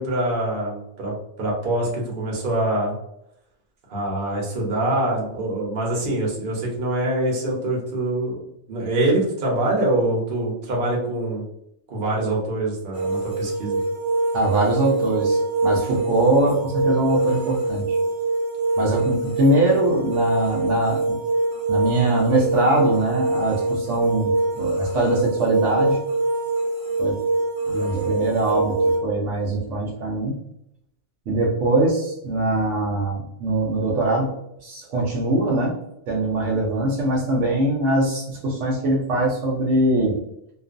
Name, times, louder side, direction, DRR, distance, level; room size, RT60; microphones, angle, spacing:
voice 1, 0.0-2.9 3.9-8.4 8.7-11.4 11.9-13.8, right 1 dB, 50° right, -3 dB, 0.9 m, -24 dB
sound 1, 12.9-29.0, right 2 dB, 20° right, 0.6 m, -24 dB
voice 2, 14.3-18.0 18.8-21.2 21.7-26.0 27.0-27.2 27.7-30.4 31.3-34.3 34.6-35.8 36.1-40.2, right 2 dB, 75° right, -2 dB, 0.9 m, -22 dB
2.4 x 2.3 x 2.4 m, 0.79 s
omnidirectional pair, 1.3 m